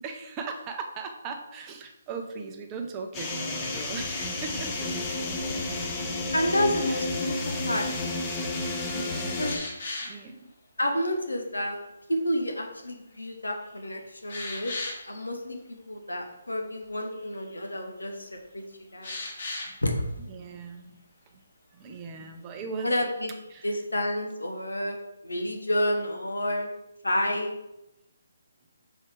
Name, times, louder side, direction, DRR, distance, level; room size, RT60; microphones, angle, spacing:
voice 1, 0.0-5.1 6.8-7.3 8.9-9.5 10.0-10.5 19.7-19.8 20.3-21.4 21.7-23.0 23.5-23.7, right 4 dB, 20° right, 4 dB, 0.7 m, -39 dB
sound 1, 3.1-9.6, left 2 dB, 15° left, 1.0 m, -31 dB
voice 2, 6.3-7.9 9.4-9.6 10.8-11.8 12.1-14.7 15.1-18.6 18.9-19.2 19.8-19.9 22.8-23.3 23.6-25.0 25.2-26.7 27.0-27.6, left 1 dB, 80° left, 3 dB, 1.3 m, -29 dB
sound 2, 9.4-10.2 13.1-13.2 13.7-13.8 14.3-15.2 16.8-16.9 17.1-17.5 19.0-19.8 23.2-23.4, left 2 dB, 55° left, 2.0 m, -36 dB
5.8 x 4.6 x 4.5 m, 0.91 s
figure-of-eight pair, 145°, 0 cm